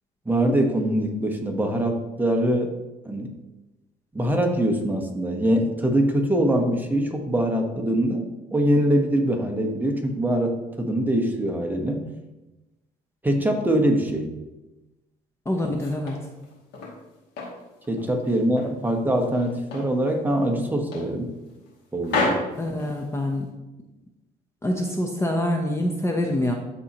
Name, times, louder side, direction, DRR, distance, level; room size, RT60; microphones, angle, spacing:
voice 1, 0.3-2.8 3.0-3.3 4.1-12.1 13.2-14.3 17.9-21.3 21.9-22.4, right 1 dB, 10° right, 3 dB, 1.0 m, -23 dB
sound 1, 15.5-17.0 17.4-18.8 19.1-20.0 20.3-20.5 20.9-21.7 22.0-23.5, left 2 dB, 85° left, 2.3 m, -31 dB
voice 2, 15.5-16.2 22.6-23.5 24.6-26.5, left 1 dB, 15° left, 2 dB, 0.8 m, -25 dB
12.5 x 4.2 x 2.9 m, 1.0 s
cardioid pair, 110°, 17 cm